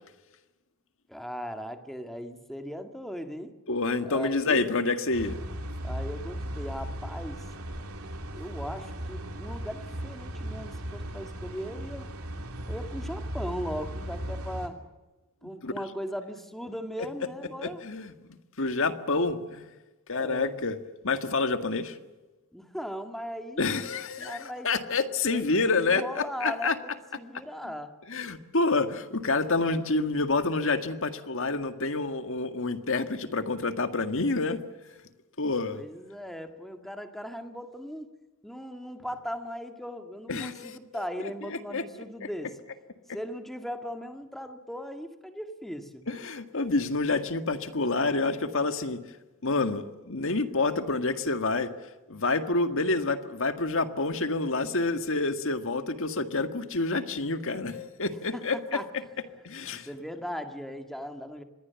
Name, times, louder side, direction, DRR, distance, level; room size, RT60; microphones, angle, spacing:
voice 1, 1.1-3.5 4.1-4.7 5.8-7.4 8.3-12.1 12.7-14.8 15.4-17.8 20.1-20.6 22.5-23.7 24.2-24.7 25.3-27.9 35.7-38.1 38.4-42.5 43.1-46.0 58.3-58.9 59.6-61.4, equal, ahead, 6 dB, 2.0 m, -38 dB
voice 2, 3.7-5.4 15.6-15.7 17.6-18.1 18.6-19.6 20.1-20.8 21.0-22.0 23.6-26.8 28.1-34.6 35.4-35.9 40.3-41.0 41.5-42.3 46.1-49.0 49.4-51.7 52.1-58.8 59.4-59.9, left 3 dB, 65° left, 9 dB, 1.8 m, -28 dB
sound 1, 5.1-14.7, equal, 80° right, 3.2 m, -37 dB
26.0 x 21.5 x 7.1 m, 1.1 s
head